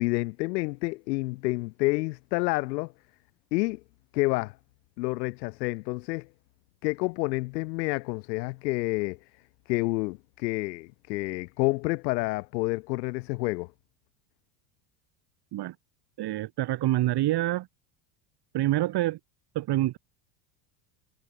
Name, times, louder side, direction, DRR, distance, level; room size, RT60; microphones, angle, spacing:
voice 1, 0.0-2.9 3.5-3.8 4.1-4.6 5.0-6.3 6.8-9.2 9.7-13.7, left 23 dB, 90° left, 1.7 m, -29 dB
voice 2, 16.2-17.7 18.5-19.2 19.5-20.0, right 15 dB, 55° right, 6.5 m, -26 dB
supercardioid pair, 125°, 49 cm